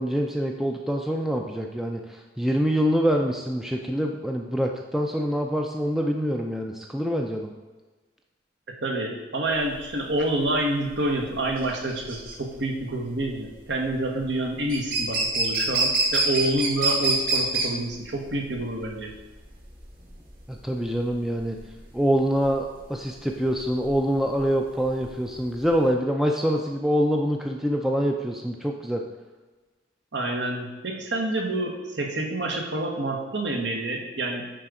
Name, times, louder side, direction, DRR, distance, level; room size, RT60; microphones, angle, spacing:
voice 1, 0.0-7.5 20.5-21.6 21.9-29.0, equal, ahead, 1 dB, 0.4 m, -25 dB
voice 2, 8.7-19.1 30.1-34.4, right 1 dB, 70° right, 1 dB, 1.4 m, -28 dB
sound 1, 9.5-25.9, right 3 dB, 50° right, 1.8 m, -28 dB
10.0 x 3.9 x 4.9 m, 1.3 s
head